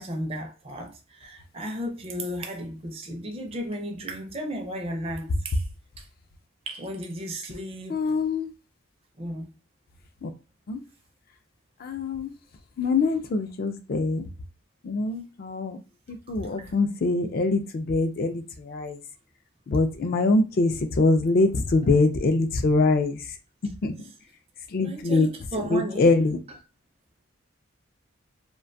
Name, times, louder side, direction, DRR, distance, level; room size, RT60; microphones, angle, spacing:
voice 1, 0.0-5.6 6.0-6.1 6.7-8.0 9.2-9.5 16.3-16.7 24.0-24.1 24.8-26.1 26.5-26.6, equal, 30° right, 0.4 m, -34 dB
voice 2, 7.9-8.5 10.2-10.3 10.7-10.8 11.8-12.3 12.8-14.3 14.8-15.8 16.3-19.0 19.7-23.2 23.8-23.9 24.7-25.3 25.7-26.4, left 3 dB, 45° left, 0.3 m, -23 dB
2.4 x 2.2 x 2.5 m
head